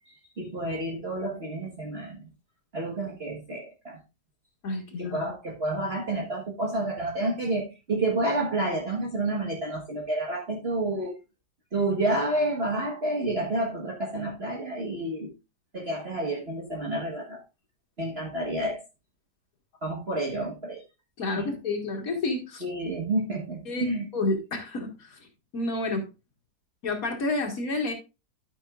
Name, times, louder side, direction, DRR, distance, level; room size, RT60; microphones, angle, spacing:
voice 1, 0.0-2.2 2.7-4.0 5.0-11.1 11.7-15.3 15.7-17.4 18.0-18.8 19.8-20.8 21.4-21.5 22.6-24.1, right 2 dB, 35° right, -2 dB, 1.6 m, -29 dB
voice 2, 4.6-5.2 21.2-22.6 23.7-23.9 24.1-25.2 25.5-26.0 26.8-27.9, left 2 dB, 50° left, 2 dB, 2.2 m, -29 dB
12.0 x 5.9 x 2.4 m, 0.27 s
omnidirectional pair, 1.9 m